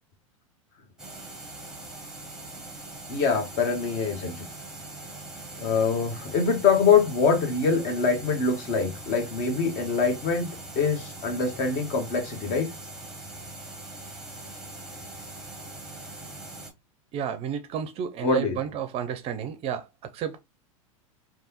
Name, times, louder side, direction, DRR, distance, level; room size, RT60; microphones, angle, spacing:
sound 1, 1.0-16.7, right 2 dB, 5° right, 0.9 m, -41 dB
voice 1, 3.1-4.4 5.6-12.7 18.2-18.6, left 5 dB, 45° left, 1.1 m, -24 dB
voice 2, 17.1-19.9 20.1-20.4, right 8 dB, 35° right, 0.5 m, -31 dB
3.3 x 2.3 x 2.8 m
hypercardioid pair, 95°, 17 cm